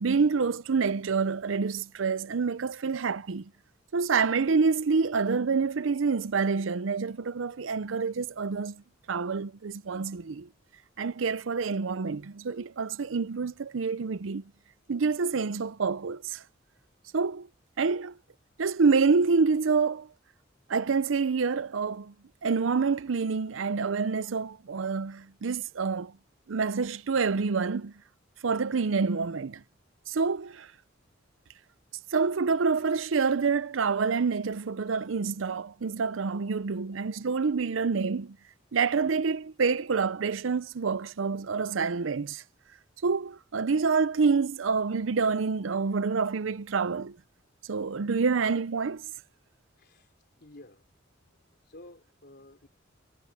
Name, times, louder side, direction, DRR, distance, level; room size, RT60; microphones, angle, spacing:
voice 1, 0.0-3.5 3.9-8.8 9.1-10.5 11.0-14.4 14.9-16.4 17.1-17.5 17.8-18.2 18.6-20.1 20.7-22.1 22.4-26.1 26.5-27.9 28.4-29.6 30.1-30.7 32.1-38.4 38.7-42.4 43.0-47.2 47.7-49.1, right 5 dB, 85° right, 0.6 m, -27 dB
voice 2, 49.8-50.9 51.2-52.7, left 1 dB, 55° left, 3.9 m, -53 dB
head